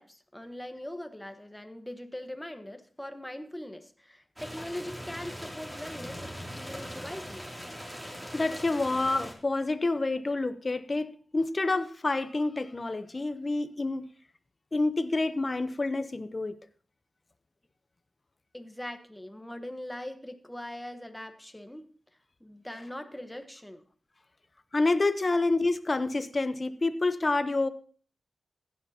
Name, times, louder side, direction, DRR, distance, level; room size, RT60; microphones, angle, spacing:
voice 1, 0.0-7.5 18.5-21.9 22.4-23.8 25.3-25.4, left 1 dB, 10° left, 1.3 m, -41 dB
sound 1, 4.4-9.3, equal, 10° right, 2.8 m, -41 dB
voice 2, 8.3-14.1 14.7-16.5 24.7-27.7, left 2 dB, 40° left, 0.8 m, -28 dB
15.5 x 9.7 x 2.9 m
cardioid pair, 60°, 0 cm